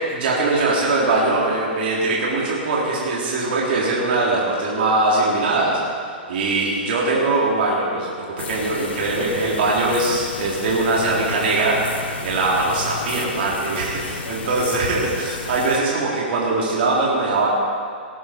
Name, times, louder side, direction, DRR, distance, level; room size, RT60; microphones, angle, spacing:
voice 1, 0.1-5.8 6.3-11.8 12.2-17.5, right 2 dB, 60° right, -4 dB, 3.2 m, -21 dB
sound 1, 8.4-15.8, left 6 dB, 70° left, 1.4 m, -33 dB
18.0 x 14.0 x 4.4 m, 2.2 s
hypercardioid pair, 115°, 6 cm